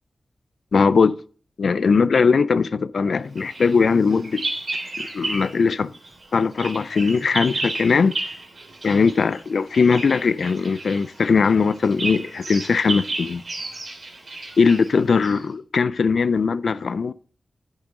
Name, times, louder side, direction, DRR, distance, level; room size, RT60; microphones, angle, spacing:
voice 1, 0.7-1.2 1.6-4.4 5.0-5.9 6.3-8.1 8.8-13.4 14.6-17.1, left 5 dB, 80° left, 0.4 m, -20 dB
Bird vocalization bird call bird song, 3.4-5.6 5.9-15.4, right 2 dB, 60° right, 3.4 m, -33 dB
10.5 x 9.0 x 3.8 m
wide cardioid pair, 70°, 0 cm